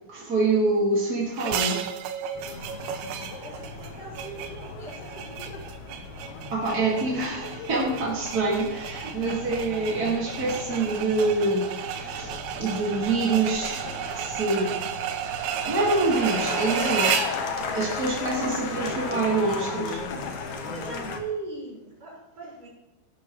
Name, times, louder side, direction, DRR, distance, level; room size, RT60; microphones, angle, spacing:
voice 1, 0.1-1.8 6.5-14.8 15.2-17.4 17.7-20.0, right 3 dB, 40° right, -5 dB, 1.4 m, -26 dB
sound 1, 1.4-17.4, right 8 dB, 85° right, 3.2 m, -33 dB
sound 2, 2.3-21.2, left 4 dB, 85° left, 1.6 m, -36 dB
voice 2, 3.4-5.6 20.6-22.7, right 4 dB, 20° right, -5 dB, 5.6 m, -39 dB
17.0 x 11.5 x 3.2 m, 0.95 s
omnidirectional pair, 5.2 m